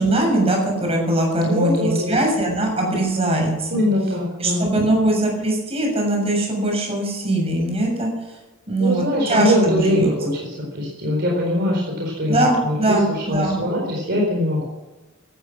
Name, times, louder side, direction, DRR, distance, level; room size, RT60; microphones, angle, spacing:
voice 1, 0.0-3.8 4.4-8.1 8.7-10.1 12.3-13.6, right 1 dB, 30° right, 0 dB, 6.9 m, -21 dB
voice 2, 1.5-2.2 3.7-4.7 8.8-14.7, left 1 dB, 55° right, -2 dB, 4.4 m, -22 dB
16.5 x 13.5 x 6.3 m, 1.1 s
head